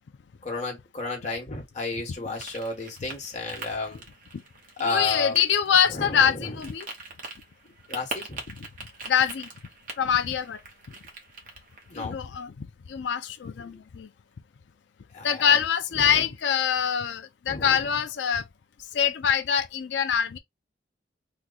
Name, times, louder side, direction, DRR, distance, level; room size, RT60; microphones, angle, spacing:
voice 1, 0.4-4.0 4.8-5.4 5.9-6.7 7.9-8.4 11.9-12.2 13.6-13.8 15.1-16.3 17.5-17.9, left 3 dB, 40° left, 1.3 m, -33 dB
sound 1, 2.3-12.1, right 3 dB, 50° right, 1.0 m, -43 dB
voice 2, 4.8-6.9 9.1-9.5 10.0-10.6 12.0-14.1 15.2-18.4 18.9-20.4, left 8 dB, 80° left, 0.4 m, -24 dB
3.0 x 2.2 x 3.7 m
head